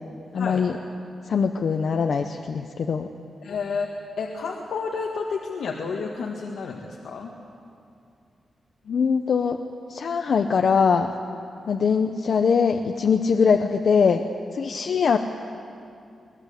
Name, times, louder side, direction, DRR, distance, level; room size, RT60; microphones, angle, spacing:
voice 1, 0.3-0.7 1.3-3.1 8.9-9.6 9.9-11.1 11.7-14.2 14.5-15.2, left 6 dB, 55° left, 5 dB, 0.8 m, -22 dB
voice 2, 3.4-3.9 4.2-7.3, left 5 dB, 85° left, -1 dB, 1.8 m, -30 dB
22.5 x 21.0 x 8.3 m, 2.5 s
wide cardioid pair, 175°, 0 cm